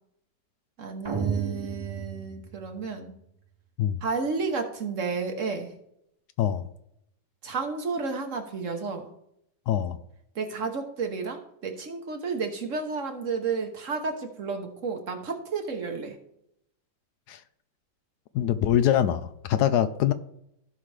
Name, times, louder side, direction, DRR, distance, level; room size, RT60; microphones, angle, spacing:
voice 1, 0.8-3.1 4.0-5.7 7.4-9.1 10.4-16.1, right 4 dB, 50° right, 5 dB, 1.3 m, -31 dB
sound 1, 1.0-3.2, right 6 dB, 25° right, 0.5 m, -33 dB
voice 2, 9.7-10.0 17.3-17.4 18.3-20.1, left 10 dB, 75° left, 12 dB, 1.1 m, -24 dB
15.5 x 5.7 x 3.3 m, 0.77 s
omnidirectional pair, 1.9 m